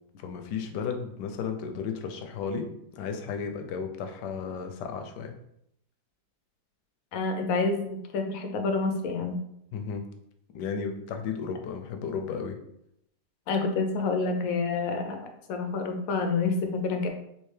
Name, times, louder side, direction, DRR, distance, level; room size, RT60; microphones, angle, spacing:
voice 1, 0.2-2.7 2.9-5.3 9.7-10.0 10.5-12.6, left 6 dB, 90° left, 5 dB, 1.2 m, -34 dB
voice 2, 7.1-9.4 13.5-17.1, left 4 dB, 70° left, 5 dB, 0.9 m, -28 dB
3.2 x 3.2 x 3.2 m, 0.76 s
omnidirectional pair, 1.8 m